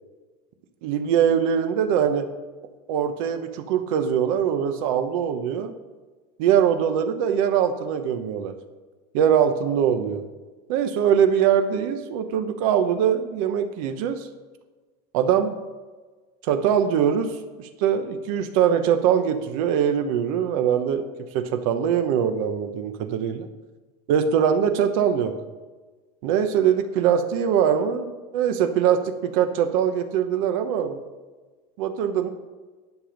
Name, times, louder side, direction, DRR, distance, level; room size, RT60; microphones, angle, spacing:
voice 1, 0.8-2.3 2.9-5.7 6.4-8.5 9.1-10.2 10.7-14.3 15.1-15.6 16.4-17.3 17.8-21.0 21.3-23.5 24.1-25.3 26.2-31.0 31.8-32.3, right 8 dB, 75° right, 8 dB, 1.0 m, -22 dB
11.0 x 7.0 x 5.2 m, 1.3 s
cardioid pair, 170°, 18 cm